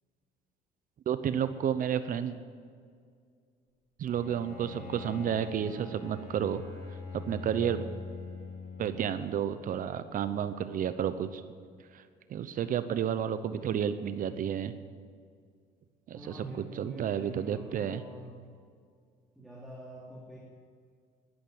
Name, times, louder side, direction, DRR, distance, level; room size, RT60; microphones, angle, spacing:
voice 1, 1.1-2.4 4.0-6.6 7.1-7.8 8.8-11.4 11.9-12.0 12.3-14.7 16.1-16.4 16.8-18.0, right 9 dB, 55° right, 12 dB, 0.8 m, -31 dB
Bowed string instrument, 4.1-9.4, left 4 dB, 60° left, 4.3 m, -43 dB
voice 2, 16.1-18.4 19.3-20.4, right 1 dB, ahead, -5 dB, 3.0 m, -45 dB
12.5 x 12.0 x 7.8 m, 2.1 s
cardioid pair, 110°, 17 cm